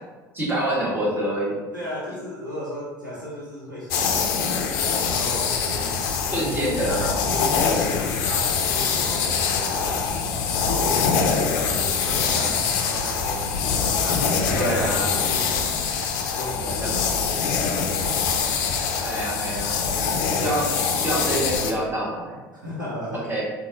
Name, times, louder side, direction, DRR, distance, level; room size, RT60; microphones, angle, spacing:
voice 1, 0.3-1.6 6.3-7.1 14.5-15.2 16.8-16.9 19.0-20.7 21.0-22.4 23.1-23.4, right 1 dB, 20° right, -6 dB, 1.4 m, -26 dB
voice 2, 1.7-10.0 10.6-15.8 16.1-18.2 22.5-23.3, left 1 dB, 90° right, -7 dB, 0.8 m, -35 dB
sound 1, 3.9-21.7, left 6 dB, 60° left, 0.4 m, -24 dB
3.9 x 2.4 x 2.8 m, 1.2 s
figure-of-eight pair, 60°, 10 cm